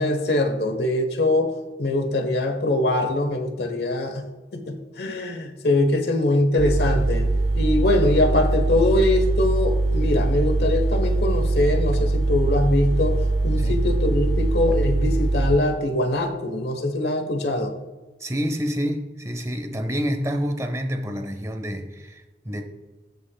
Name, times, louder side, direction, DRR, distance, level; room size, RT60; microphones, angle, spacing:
voice 1, 0.0-1.5 1.8-4.3 4.5-7.3 7.5-13.2 13.4-17.7, left 2 dB, 70° left, 5 dB, 1.0 m, -23 dB
sound 1, 6.6-15.6, right 2 dB, 65° right, 0.6 m, -22 dB
voice 2, 18.2-22.6, equal, 15° right, 5 dB, 0.8 m, -28 dB
17.0 x 5.7 x 2.3 m, 1.2 s
head